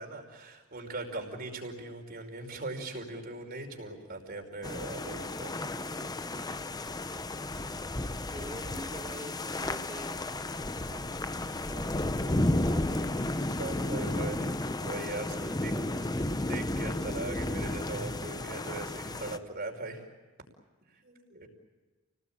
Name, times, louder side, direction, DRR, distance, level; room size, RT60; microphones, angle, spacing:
voice 1, 0.0-5.6 13.5-14.4 14.8-15.4 15.6-15.7 16.0-16.1 16.5-20.1 20.9-21.5, right 2 dB, 45° right, 3 dB, 5.2 m, -40 dB
sound 1, 4.6-19.4, left 1 dB, 20° left, 0.8 m, -33 dB
voice 2, 5.8-6.5 8.3-10.2 10.6-11.0 11.7-13.3 13.9-14.5 15.4-16.3, right 1 dB, 20° right, -1 dB, 1.8 m, -45 dB
30.0 x 19.5 x 8.9 m, 1.3 s
head